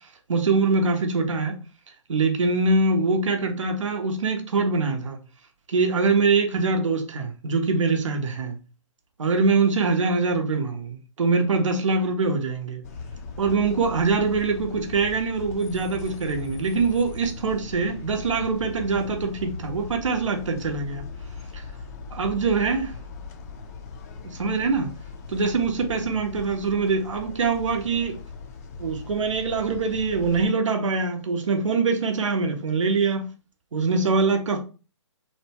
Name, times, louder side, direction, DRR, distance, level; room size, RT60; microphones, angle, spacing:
voice 1, 0.3-1.6 2.1-5.2 5.7-8.6 9.2-12.8 13.4-21.0 21.5-21.6 22.1-22.9 24.2-24.9 25.3-28.2 28.8-33.2 33.7-34.6, right 4 dB, 75° right, 0.8 m, -23 dB
sound 1, 12.8-30.5, left 4 dB, 30° left, 0.4 m, -39 dB
2.8 x 2.2 x 2.8 m
hypercardioid pair, 140°, 16 cm